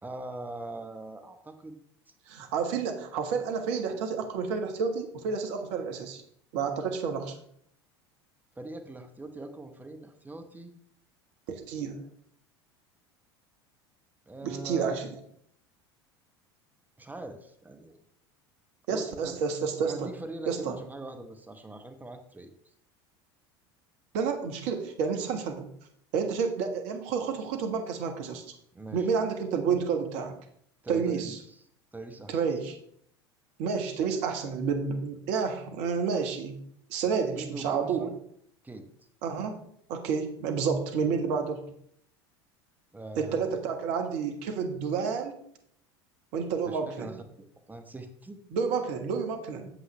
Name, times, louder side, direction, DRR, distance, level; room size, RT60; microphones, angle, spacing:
voice 1, 0.0-1.8 8.6-10.7 14.3-15.0 17.0-18.0 18.9-19.4 19.8-22.5 28.7-29.1 30.8-31.6 31.9-32.6 37.3-38.2 38.6-38.9 42.9-43.6 46.6-48.4, right 2 dB, 10° right, 6 dB, 1.1 m, -42 dB
voice 2, 2.3-6.2 6.5-7.3 11.5-12.0 14.4-15.1 18.9-20.1 20.5-20.8 24.1-25.7 26.1-28.4 28.9-30.4 30.9-31.4 32.3-32.7 33.6-36.6 36.9-38.1 39.2-39.6 39.9-41.6 43.2-45.3 46.3-47.1 48.5-49.7, right 6 dB, 55° right, 5 dB, 1.5 m, -30 dB
8.3 x 7.7 x 3.3 m, 0.67 s
figure-of-eight pair, 75°, 14 cm